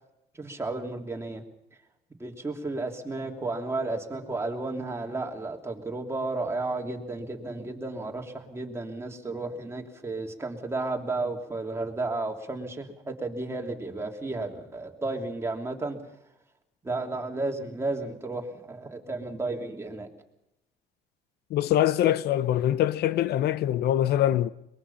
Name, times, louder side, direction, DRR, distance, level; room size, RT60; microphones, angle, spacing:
voice 1, 0.4-1.4 2.2-16.0 16.8-20.1, right 2 dB, 15° right, 3.1 m, -33 dB
voice 2, 21.5-24.5, left 12 dB, 70° left, 0.7 m, -24 dB
23.0 x 21.5 x 5.7 m
cardioid pair, 110°, 17 cm